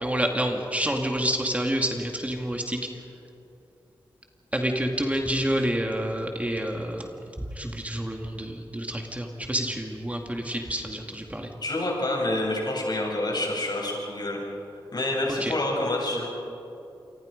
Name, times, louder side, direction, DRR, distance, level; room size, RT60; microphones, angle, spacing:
voice 1, 0.0-2.8 4.5-7.1 7.4-11.5 15.4-15.5, right 1 dB, 15° right, 2 dB, 2.4 m, -28 dB
voice 2, 11.6-14.4 14.9-16.3, left 1 dB, 50° left, -2 dB, 7.9 m, -27 dB
28.0 x 25.0 x 5.3 m, 2.8 s
wide cardioid pair, 70°, 9 cm